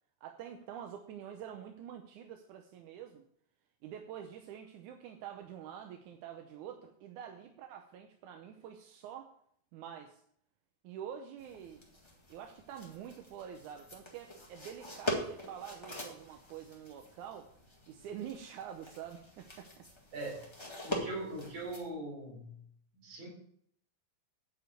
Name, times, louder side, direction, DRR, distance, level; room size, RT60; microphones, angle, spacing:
voice 1, 0.2-3.3 3.8-9.3 9.7-10.2 10.8-11.8 12.3-17.5 17.9-19.9, right 9 dB, 75° right, 5 dB, 2.0 m, -46 dB
sound 1, 11.4-21.9, left 1 dB, 30° left, 0.5 m, -43 dB
voice 2, 20.8-22.6 22.9-23.3, right 2 dB, 50° right, -3 dB, 4.6 m, -41 dB
9.7 x 4.8 x 7.8 m, 0.67 s
omnidirectional pair, 3.9 m